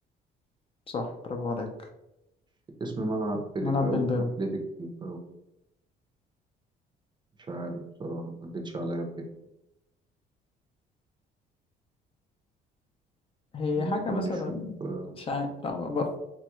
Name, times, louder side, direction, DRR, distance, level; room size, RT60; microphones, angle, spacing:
voice 1, 0.9-1.7 3.6-4.3 13.5-14.8 15.3-16.2, left 3 dB, 35° left, 3 dB, 0.5 m, -29 dB
voice 2, 2.8-4.0 4.4-4.5 4.8-5.2 7.5-9.1 13.7-14.4 14.8-15.1, right 2 dB, 25° right, 3 dB, 0.6 m, -33 dB
3.0 x 2.3 x 2.9 m, 0.88 s
cardioid pair, 110°, 17 cm